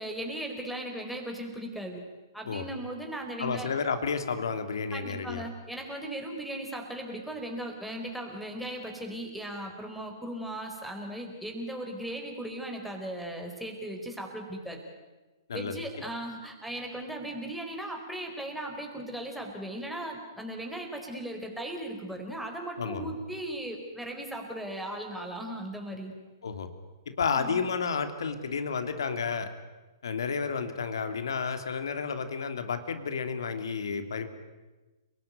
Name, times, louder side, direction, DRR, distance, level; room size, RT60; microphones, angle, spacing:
voice 1, 0.0-2.0 2.3-3.7 4.9-14.8 15.5-26.1 27.4-27.6, right 1 dB, ahead, 1 dB, 4.5 m, -37 dB
voice 2, 3.4-5.4 15.5-15.8 22.8-23.1 26.4-26.7 27.2-29.5 30.0-34.3, left 5 dB, 70° left, 9 dB, 2.9 m, -31 dB
29.5 x 19.0 x 9.4 m, 1.2 s
figure-of-eight pair, 120°, 2 cm